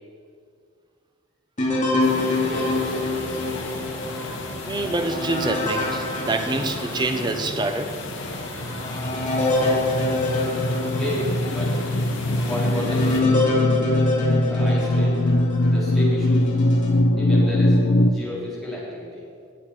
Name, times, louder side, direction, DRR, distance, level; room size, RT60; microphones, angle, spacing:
sound 1, 1.6-7.3 7.9-8.0 8.5-15.7 16.3-16.9, left 2 dB, 35° left, 2.3 m, -26 dB
sound 2, 2.0-13.2, left 2 dB, 60° left, 1.7 m, -34 dB
voice 1, 2.0-3.2 10.9-11.8 12.4-13.3 14.5-15.2 15.7-16.5 17.1-19.2, left 1 dB, ahead, 3.6 m, -32 dB
voice 2, 4.7-8.0, right 2 dB, 20° right, 0.7 m, -26 dB
sound 3, 8.3-18.1, left 1 dB, 75° left, 0.7 m, -22 dB
19.0 x 7.9 x 4.4 m
head